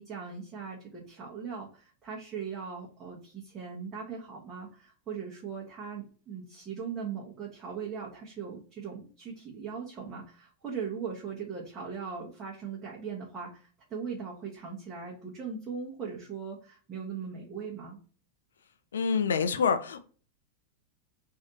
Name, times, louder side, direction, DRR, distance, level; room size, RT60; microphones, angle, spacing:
voice 1, 0.0-18.0, right 6 dB, 25° right, -6 dB, 1.1 m, -39 dB
voice 2, 18.9-20.0, left 6 dB, 65° left, 10 dB, 0.4 m, -26 dB
3.2 x 2.7 x 2.8 m, 0.41 s
figure-of-eight pair, 90°, 0 cm